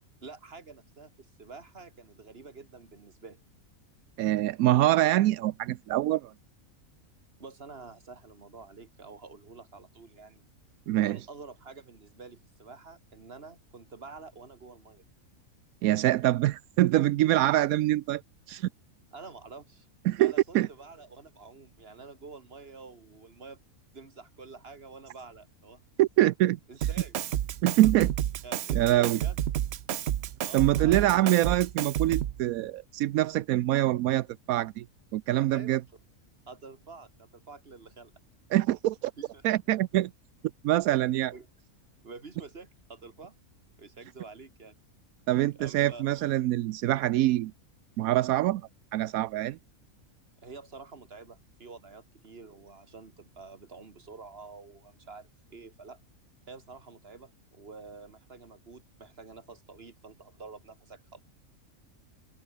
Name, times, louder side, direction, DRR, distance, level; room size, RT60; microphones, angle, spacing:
voice 1, 0.2-3.4 7.4-10.4 11.0-15.0 19.1-19.9 20.2-23.6 23.9-25.8 26.7-27.2 28.4-29.4 30.4-31.3 35.5-35.8 36.5-38.1 39.0-39.5 40.9-41.5 42.0-43.4 43.8-44.8 45.6-46.1 50.4-56.0 56.5-61.2, right 4 dB, 45° right, 2.4 m, -48 dB
voice 2, 4.2-6.3 10.9-11.2 15.8-18.2 18.5-18.7 20.1-20.7 26.0-26.6 27.6-28.1 28.7-29.2 30.5-34.8 35.1-35.8 38.5-39.0 39.4-40.1 40.6-41.3 45.3-47.5 48.0-48.6 48.9-49.6, right 15 dB, 85° right, 1.0 m, -24 dB
Drum kit, 26.8-32.4, right 11 dB, 60° right, 0.8 m, -30 dB
omnidirectional pair, 1.5 m